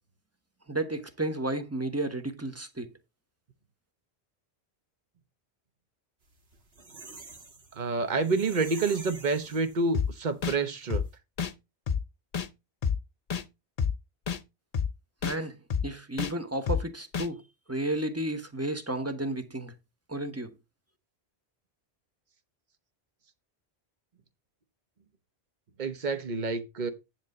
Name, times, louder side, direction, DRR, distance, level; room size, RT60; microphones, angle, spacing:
voice 1, 0.7-2.9 15.2-15.6 15.8-17.4 17.7-19.7 20.1-20.5, right 1 dB, 15° right, 1.1 m, -32 dB
sound 1, 6.3-10.2 10.6-10.7 10.9-11.1, right 3 dB, 65° right, 1.9 m, -47 dB
voice 2, 7.7-11.0 25.8-26.9, right 3 dB, 45° right, 1.2 m, -28 dB
sound 2, 9.9-10.1 10.4-10.6 10.9-11.0 11.4-11.5 11.9-12.0 12.3-12.5 12.8-13.0 13.3-13.4 13.8-13.9 14.3-14.4 14.7-14.9 15.2-15.4 15.7-15.8 16.2-16.3 16.7-16.8 17.1-17.3, left 7 dB, 40° left, 0.7 m, -28 dB
10.0 x 3.4 x 6.6 m
omnidirectional pair, 1.1 m